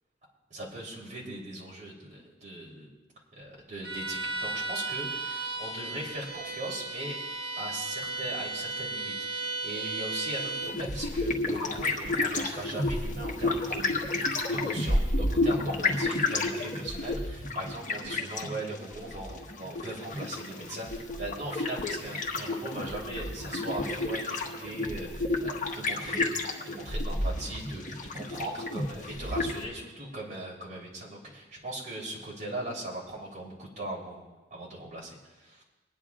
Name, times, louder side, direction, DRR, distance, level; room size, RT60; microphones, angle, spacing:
voice 1, 0.5-2.9 3.3-7.2 7.6-14.0 14.5-34.2 34.5-35.6, right 1 dB, 45° right, -5 dB, 3.8 m, -39 dB
Bowed string instrument, 3.8-10.8, right 3 dB, 60° right, 1.6 m, -35 dB
sound 1, 10.6-29.7, left 2 dB, 45° left, 1.3 m, -31 dB
26.0 x 10.0 x 2.5 m, 1.2 s
head